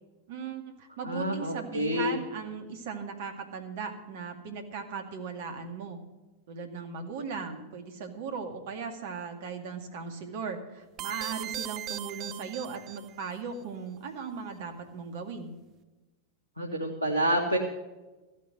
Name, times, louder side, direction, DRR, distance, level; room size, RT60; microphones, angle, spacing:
voice 1, 0.3-6.0 6.5-15.5, right 5 dB, 55° right, 6 dB, 2.1 m, -38 dB
voice 2, 1.0-2.2 16.6-17.6, equal, 90° left, 1 dB, 1.5 m, -28 dB
sound 1, 11.0-13.3, right 11 dB, 35° right, 0.7 m, -38 dB
14.5 x 8.6 x 7.8 m, 1.1 s
figure-of-eight pair, 90°, 0 cm